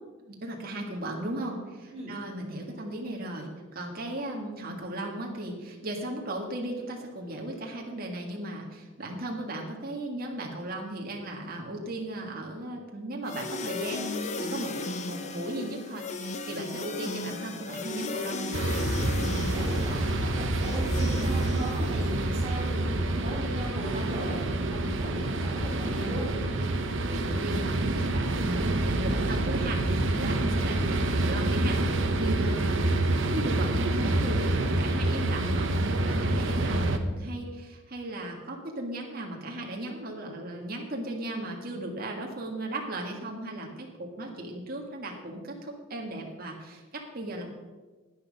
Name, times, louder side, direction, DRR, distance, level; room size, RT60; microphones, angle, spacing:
voice 1, 0.3-14.7 15.1-18.6 27.0-47.4, right 1 dB, 45° right, 0 dB, 1.8 m, -36 dB
sound 1, 13.2-22.4, left 3 dB, 35° left, 0.8 m, -36 dB
sound 2, 18.5-37.0, right 2 dB, 65° right, 1.0 m, -27 dB
voice 2, 19.3-26.4 29.8-30.2, equal, 25° right, -7 dB, 2.8 m, -37 dB
10.5 x 10.0 x 5.3 m, 1.3 s
head